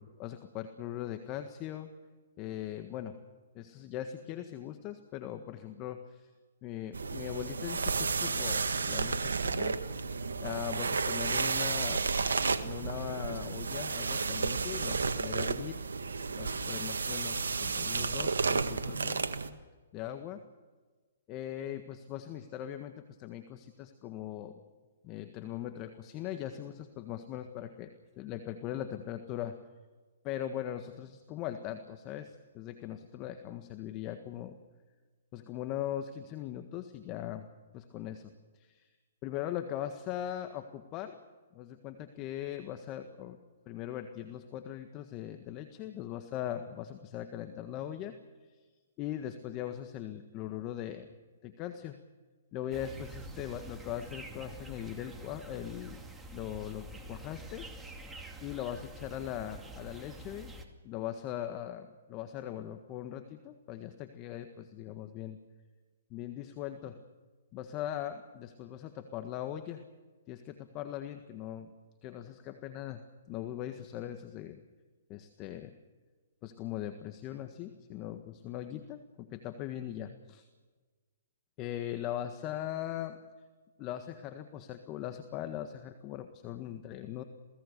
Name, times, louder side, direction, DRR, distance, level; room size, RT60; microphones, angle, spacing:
voice 1, 0.0-1.9 2.4-3.2 3.5-6.3 6.6-9.8 10.4-12.1 12.5-15.8 16.4-19.3 19.9-20.4 21.3-24.6 25.0-27.9 28.2-29.6 30.2-34.6 35.3-37.5 37.7-38.3 38.6-38.9 39.2-41.2 41.5-43.4 43.6-48.1 49.0-51.1 51.4-52.0 52.5-56.0 56.3-57.7 58.4-60.5 60.8-65.4 66.1-67.0 67.5-69.8 70.3-71.7 72.0-74.6 75.1-75.7 76.4-80.4 81.6-83.2 83.8-87.2, left 11 dB, 30° left, 8 dB, 1.6 m, -40 dB
sound 1, 6.9-19.5, right 4 dB, 80° right, 1.7 m, -32 dB
sound 2, 52.7-60.6, right 1 dB, 10° right, 2.6 m, -47 dB
28.0 x 19.0 x 6.8 m, 1.3 s
hypercardioid pair, 130°, 0 cm